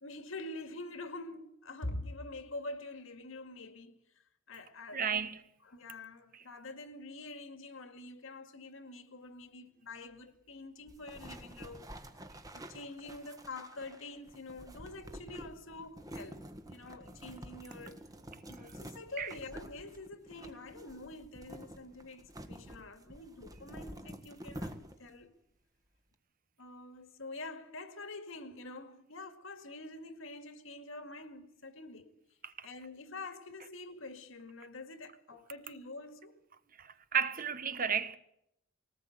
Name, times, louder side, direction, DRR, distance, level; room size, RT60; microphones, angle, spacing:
voice 1, 0.0-5.3 5.7-11.9 12.5-18.0 18.5-25.3 26.6-32.1 32.6-36.4, left 2 dB, 70° left, 2.1 m, -46 dB
voice 2, 4.9-5.4 19.2-19.3 32.4-32.7 36.8-38.2, right 7 dB, 40° right, 1.1 m, -33 dB
sound 1, 10.9-25.2, right 1 dB, 15° right, 1.5 m, -49 dB
21.0 x 18.5 x 8.0 m
head